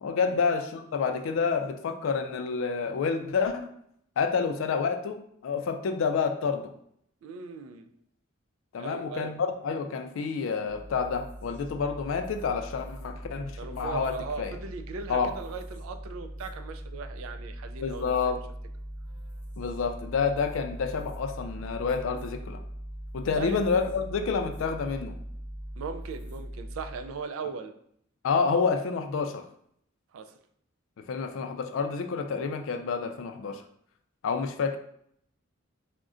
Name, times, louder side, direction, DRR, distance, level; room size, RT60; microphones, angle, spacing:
voice 1, 0.0-3.7 4.2-6.7 8.7-14.5 15.1-15.3 17.8-18.4 19.6-22.6 23.1-25.2 28.2-29.4 31.1-33.6 34.2-34.8, left 5 dB, 70° left, 6 dB, 0.3 m, -29 dB
voice 2, 7.2-7.9 8.8-9.4 13.6-18.2 23.4-23.6 25.8-27.7 30.1-30.3, right 5 dB, 85° right, 7 dB, 0.3 m, -38 dB
sound 1, 10.6-27.2, equal, 25° left, 0.7 m, -41 dB
3.6 x 2.1 x 2.4 m, 0.70 s
head